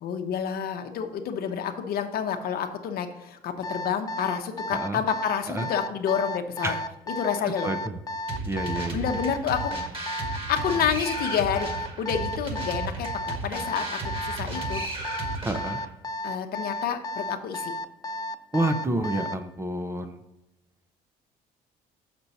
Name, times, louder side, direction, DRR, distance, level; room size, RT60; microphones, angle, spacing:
voice 1, 0.0-6.7 7.1-7.7 8.9-9.7 10.5-14.8 16.2-17.7, left 8 dB, 65° left, 6 dB, 0.8 m, -29 dB
Alarm, 3.6-19.4, left 1 dB, 20° left, 0.3 m, -33 dB
voice 2, 4.7-5.0 5.5-5.7 6.6-6.8 7.4-8.0 8.5-9.1 15.4-15.8 18.5-20.2, right 1 dB, 15° right, 8 dB, 0.6 m, -29 dB
sound 1, 8.3-15.9, right 2 dB, 30° right, 1.8 m, -34 dB
6.6 x 6.1 x 4.2 m, 0.95 s
cardioid pair, 110°, 17 cm